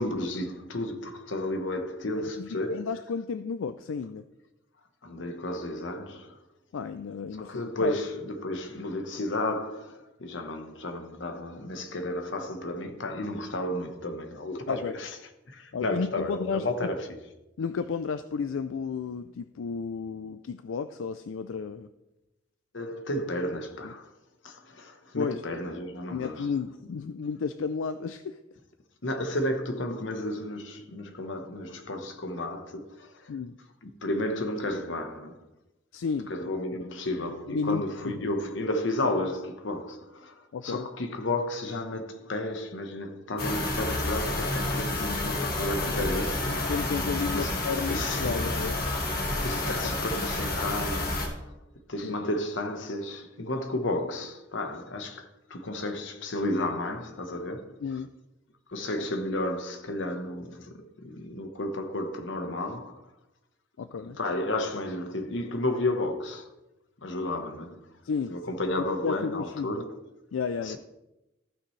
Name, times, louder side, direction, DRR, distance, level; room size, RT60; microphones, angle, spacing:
voice 1, 0.0-2.9 5.0-6.4 7.4-15.2 15.5-17.2 22.7-24.1 24.4-26.5 29.0-33.3 33.8-35.4 36.3-46.7 47.3-48.4 49.4-51.5 51.9-57.8 58.7-63.0 64.0-66.5 67.0-67.9 68.3-70.0 70.6-70.8, left 1 dB, 70° left, 1.1 m, -32 dB
voice 2, 2.4-4.2 6.7-8.0 14.7-14.9 15.7-16.7 17.6-21.9 23.8-23.9 25.1-25.4 26.1-28.4 33.3-33.6 35.9-36.3 36.8-36.9 37.5-38.3 40.5-40.9 45.9-46.1 46.5-48.9 49.7-49.9 50.2-50.3 52.0-52.2 57.8-58.1 63.8-64.2 68.0-68.5 69.0-69.8 70.3-70.8, left 5 dB, 90° left, 0.4 m, -33 dB
sound 1, 43.4-51.3, left 2 dB, 50° left, 1.7 m, -29 dB
15.0 x 6.0 x 3.2 m
head